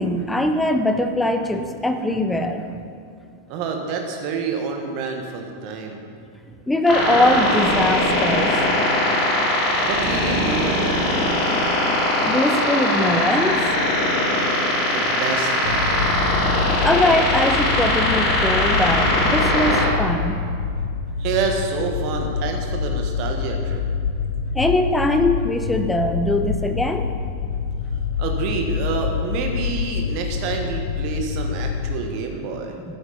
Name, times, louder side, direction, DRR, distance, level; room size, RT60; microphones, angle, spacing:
voice 1, 0.0-2.7 6.7-8.6 12.2-13.7 16.8-20.4 24.5-27.1 32.9-33.0, left 1 dB, 5° left, 6 dB, 0.8 m, -21 dB
voice 2, 3.5-6.0 9.8-11.2 14.8-16.0 21.2-23.8 28.2-32.7, right 5 dB, 45° right, 3 dB, 1.5 m, -28 dB
sound 1, 6.9-19.8, left 1 dB, 30° left, 2.9 m, -20 dB
sound 2, 15.7-32.0, left 6 dB, 60° left, 0.6 m, -27 dB
13.5 x 8.8 x 4.2 m, 2.3 s
figure-of-eight pair, 90°, 0 cm